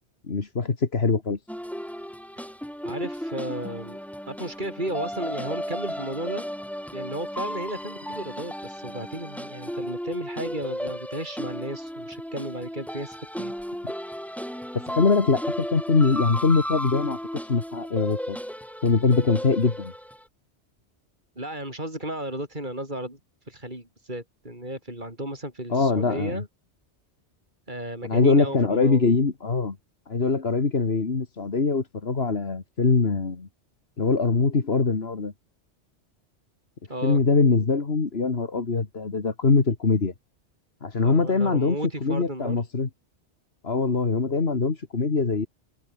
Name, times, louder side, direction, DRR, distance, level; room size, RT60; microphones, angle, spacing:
voice 1, 0.3-1.4 14.7-17.2 17.4-18.4 18.8-19.9 25.7-26.4 28.0-29.8 30.1-33.5 34.0-35.3 37.0-40.1 40.8-42.9 43.6-45.5, left 4 dB, 60° left, 2.2 m, -23 dB
sound 1, 1.5-20.2, equal, ahead, 1.6 m, -34 dB
voice 2, 2.8-4.0 4.3-6.4 6.9-13.5 21.3-23.2 23.4-26.5 27.7-29.1 36.9-37.2 41.0-42.6, right 1 dB, 45° right, 6.8 m, -34 dB
omnidirectional pair, 1.2 m